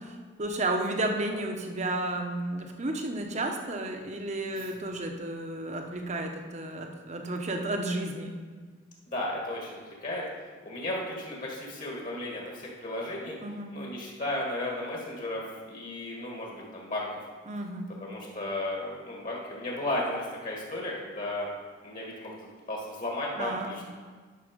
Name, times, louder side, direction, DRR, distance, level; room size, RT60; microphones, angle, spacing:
voice 1, 0.0-8.3 13.4-13.8 17.5-17.9 23.4-23.9, right 2 dB, 35° right, 3 dB, 0.9 m, -32 dB
voice 2, 9.1-10.3 10.6-13.3 13.7-15.4 15.7-17.2 18.0-21.5 21.8-22.3 22.7-23.9, left 1 dB, 45° left, -2 dB, 1.8 m, -34 dB
11.0 x 5.8 x 5.2 m, 1.5 s
head